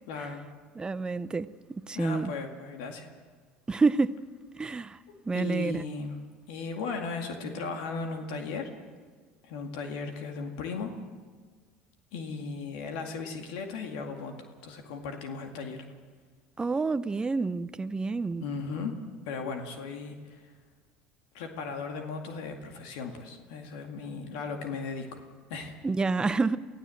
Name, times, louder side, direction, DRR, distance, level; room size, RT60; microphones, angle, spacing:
voice 1, 0.1-0.4 1.9-3.1 5.1-6.2 6.5-8.7 9.4-10.9 12.1-15.8 18.4-19.0 19.3-20.4 21.3-25.2 25.5-25.7, left 4 dB, 75° left, 2.1 m, -36 dB
voice 2, 0.8-2.3 3.7-4.2 4.6-5.0 5.2-5.8 16.6-18.4 25.8-26.6, right 4 dB, 20° right, 0.7 m, -28 dB
24.0 x 15.5 x 7.8 m
supercardioid pair, 90°, 5 cm